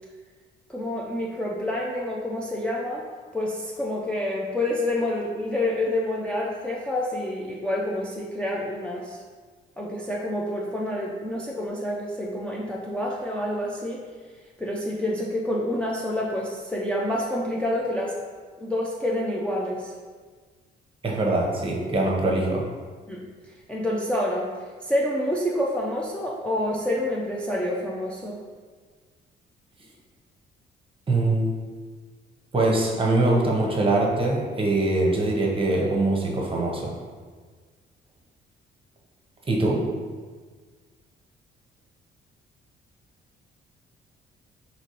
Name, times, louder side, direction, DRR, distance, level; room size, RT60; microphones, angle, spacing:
voice 1, 0.7-3.1 3.3-9.2 9.8-14.0 14.6-18.2 18.6-19.9 23.1-24.5 24.8-28.4, left 1 dB, 5° left, -4 dB, 0.4 m, -28 dB
voice 2, 21.0-22.7 31.1-31.5 32.5-37.0 39.5-39.8, right 2 dB, 25° right, -1 dB, 0.8 m, -23 dB
4.3 x 2.9 x 3.0 m, 1.5 s
cardioid pair, 90°, 20 cm